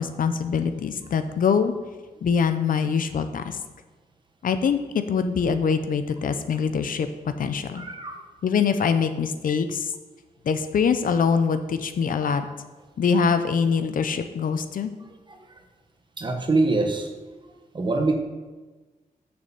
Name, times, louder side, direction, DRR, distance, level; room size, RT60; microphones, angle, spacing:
voice 1, 0.0-1.7 2.2-3.6 4.4-7.1 7.4-7.8 8.4-9.9 10.5-12.5 13.0-14.9, left 6 dB, 65° left, 10 dB, 0.6 m, -23 dB
voice 2, 7.7-8.2 12.3-12.5 15.3-15.4 16.2-17.1 17.7-18.1, right 3 dB, 30° right, 4 dB, 1.1 m, -24 dB
6.9 x 6.5 x 7.0 m, 1.2 s
wide cardioid pair, 175°, 15 cm